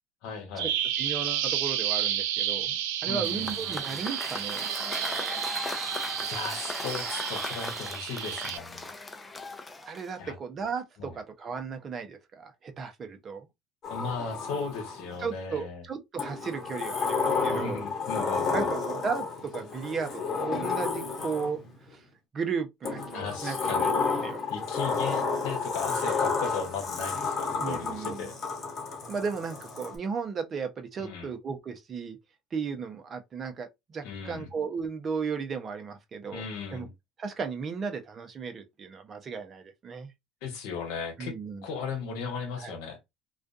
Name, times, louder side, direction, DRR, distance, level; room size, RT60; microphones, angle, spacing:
voice 1, 0.2-0.7 2.7-2.8 3.1-3.5 6.2-8.9 10.2-10.3 11.0-11.2 13.9-15.8 17.4-18.7 23.1-23.9 24.5-28.3 31.0-31.3 34.0-34.5 36.3-36.9 40.4-41.3 41.6-43.0, left 5 dB, 75° left, 0.9 m, -36 dB
Bird vocalization bird call bird song, 0.6-8.6, right 11 dB, 85° right, 0.3 m, -31 dB
voice 2, 1.0-2.7 3.0-4.7 9.8-13.5 15.2-17.8 18.5-21.6 21.9-22.0 22.3-24.5 27.6-28.3 29.1-32.2 32.5-36.9 37.2-40.1 41.2-41.6 42.6-42.8, right 5 dB, 40° right, 0.6 m, -35 dB
Cheering / Applause / Crowd, 3.2-10.3, left 3 dB, 20° left, 0.6 m, -38 dB
Sliding door, 13.8-15.2 16.2-21.7 22.8-29.9, left 4 dB, 45° left, 1.2 m, -31 dB
2.4 x 2.2 x 2.5 m
supercardioid pair, 85°, 0 cm